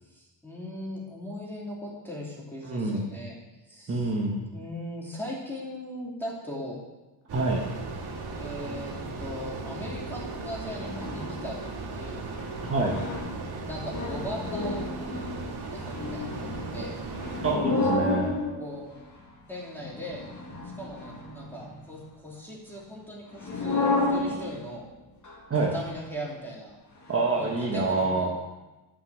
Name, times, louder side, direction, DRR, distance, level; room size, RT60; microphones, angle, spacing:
voice 1, 0.1-3.4 3.6-4.1 4.5-6.8 8.4-11.5 11.8-12.2 13.6-15.3 15.7-16.9 18.6-18.9 19.5-20.2 20.8-24.9 25.7-26.8 27.3-28.3, equal, 5° left, -5 dB, 2.8 m, -39 dB
voice 2, 2.6-3.0 3.9-4.4 7.3-7.6 12.6-12.9 17.4-18.3 25.5-25.7 27.1-28.3, right 3 dB, 25° right, -2 dB, 1.1 m, -26 dB
sound 1, 7.3-17.5, right 3 dB, 50° right, 1.7 m, -37 dB
sound 2, 10.8-11.6 12.0-12.1 12.4-19.2 19.8-21.8 23.4-24.7 25.2-25.4 25.9-26.0 27.1-27.8, left 2 dB, 35° left, 1.9 m, -32 dB
11.0 x 6.0 x 6.3 m, 1.1 s
wide cardioid pair, 160°, 50 cm